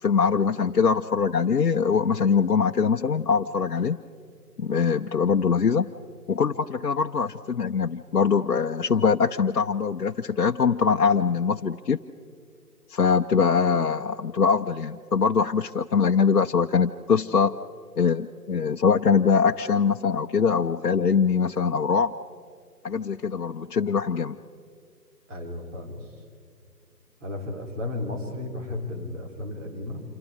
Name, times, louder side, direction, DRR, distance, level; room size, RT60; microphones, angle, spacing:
voice 1, 0.0-4.0 4.6-5.9 6.3-12.0 12.9-17.5 18.0-22.1 22.8-24.4, left 6 dB, 65° left, 4 dB, 0.7 m, -23 dB
voice 2, 25.3-26.1 27.2-30.0, left 2 dB, 50° right, 2 dB, 4.2 m, -34 dB
27.0 x 24.5 x 5.0 m, 2.2 s
figure-of-eight pair, 150°, 49 cm